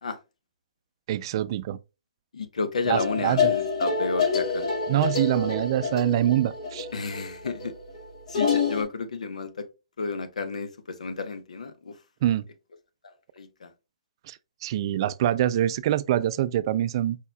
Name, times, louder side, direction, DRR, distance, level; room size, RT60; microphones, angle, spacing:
voice 1, 1.1-1.8 2.9-3.6 4.9-6.9 12.2-12.4 14.3-17.2, right 12 dB, 45° right, 0.3 m, -25 dB
voice 2, 2.3-4.7 6.9-7.8 8.3-9.7 10.0-12.0 13.4-13.7, left 4 dB, 80° left, 0.9 m, -31 dB
sound 1, 2.9-8.8, left 5 dB, 55° left, 2.0 m, -27 dB
4.9 x 4.3 x 2.2 m
hypercardioid pair, 140°, 4 cm